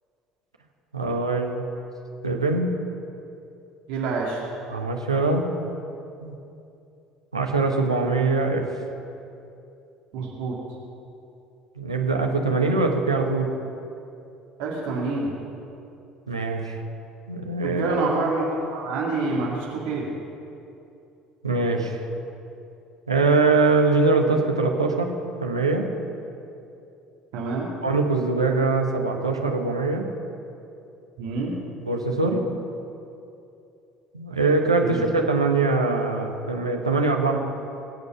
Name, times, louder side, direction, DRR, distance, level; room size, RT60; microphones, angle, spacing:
voice 1, 0.9-1.6 2.2-2.7 4.7-5.5 6.2-6.3 7.3-8.6 11.8-13.5 16.3-16.8 17.3-18.0 21.4-22.0 23.1-25.1 25.4-25.9 27.8-30.1 31.8-32.5 34.1-37.4, right 3 dB, 85° right, 2 dB, 1.2 m, -22 dB
voice 2, 3.9-4.4 10.1-10.6 14.6-15.3 17.6-20.0 27.3-27.7 31.2-31.5 34.8-35.0, right 3 dB, 60° right, -3 dB, 2.3 m, -27 dB
23.0 x 8.1 x 5.5 m, 2.7 s
figure-of-eight pair, 60°, 3 cm